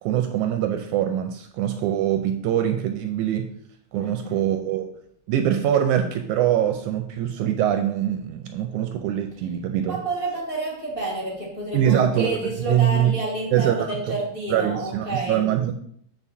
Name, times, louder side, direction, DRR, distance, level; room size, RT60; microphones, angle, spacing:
voice 1, 0.0-3.5 3.9-4.9 5.3-10.0 11.7-13.1 13.5-13.9 14.5-15.7, right 10 dB, 80° right, 5 dB, 1.9 m, -23 dB
voice 2, 4.0-4.5 9.8-15.5, right 2 dB, 25° left, -3 dB, 1.4 m, -30 dB
7.1 x 5.9 x 4.2 m, 0.66 s
omnidirectional pair, 3.8 m